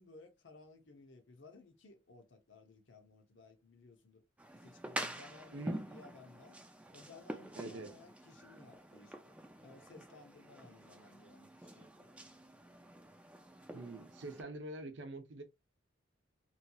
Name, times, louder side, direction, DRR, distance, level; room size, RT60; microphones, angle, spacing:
voice 1, 0.0-4.2 4.5-6.6 6.9-9.4 9.6-12.1, left 3 dB, 70° left, 0.8 m, -58 dB
sound 1, 4.4-14.4, right 1 dB, 5° right, 0.4 m, -47 dB
voice 2, 7.6-7.9 13.7-15.4, right 2 dB, 65° right, 0.7 m, -45 dB
3.0 x 2.8 x 2.3 m
head